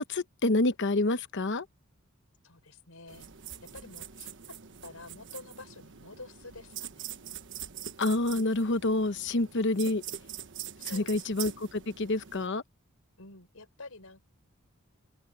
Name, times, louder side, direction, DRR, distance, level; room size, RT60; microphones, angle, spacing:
voice 1, 0.0-1.6 8.0-10.0 10.9-12.6, left 2 dB, 60° left, 1.0 m, -28 dB
voice 2, 2.4-3.3 3.7-4.6 4.8-7.1 9.8-10.0 10.8-11.6 13.2-14.2, left 3 dB, 80° left, 5.4 m, -49 dB
sound 1, 3.1-12.5, right 10 dB, 60° right, 1.2 m, -44 dB
open air
head